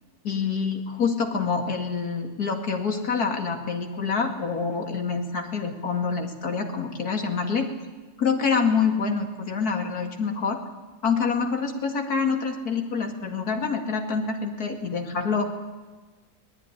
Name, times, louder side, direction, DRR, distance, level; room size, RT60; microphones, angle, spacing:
voice 1, 0.2-7.7 8.2-10.6 11.0-15.5, left 5 dB, 80° left, 4 dB, 2.8 m, -26 dB
24.5 x 18.5 x 10.0 m, 1.3 s
omnidirectional pair, 1.6 m